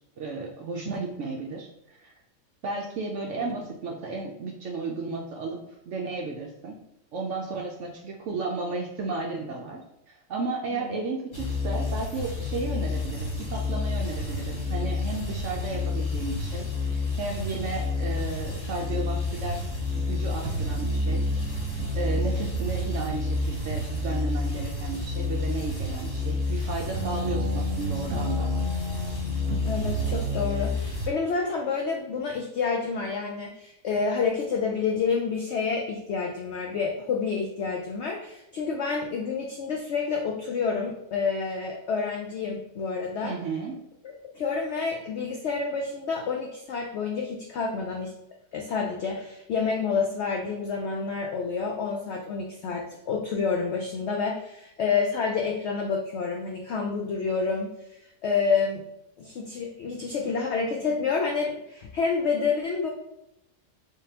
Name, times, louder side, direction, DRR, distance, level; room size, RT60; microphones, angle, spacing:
voice 1, 0.0-2.1 2.6-5.6 5.9-6.8 7.1-9.8 10.1-19.6 19.9-21.2 21.9-28.5 43.2-43.7, right 3 dB, 70° right, 0 dB, 0.7 m, -33 dB
sound 1, 11.3-31.1, left 4 dB, 55° left, 1.5 m, -30 dB
sound 2, 19.9-20.2 20.4-26.7 26.9-30.5, right 6 dB, 85° right, 1.1 m, -34 dB
voice 2, 29.6-43.3 44.0-48.1 48.5-57.7 58.2-58.8 59.2-62.9, left 5 dB, 80° left, 0 dB, 0.6 m, -28 dB
3.7 x 3.6 x 2.8 m, 0.86 s
omnidirectional pair, 1.7 m